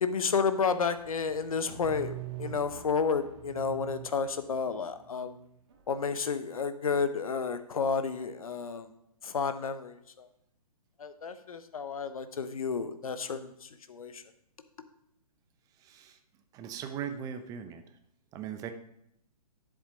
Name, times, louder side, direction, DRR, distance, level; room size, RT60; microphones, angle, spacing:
voice 1, 0.0-5.4 5.9-8.9 9.2-10.3 11.0-14.2, left 5 dB, 60° left, 11 dB, 1.1 m, -31 dB
sound 1, 0.9-5.8, right 12 dB, 45° right, 1.8 m, -45 dB
voice 2, 15.8-16.2 16.5-17.8 18.3-18.7, right 8 dB, 15° right, 9 dB, 0.8 m, -39 dB
10.5 x 7.5 x 5.1 m, 0.75 s
figure-of-eight pair, 125°, 20 cm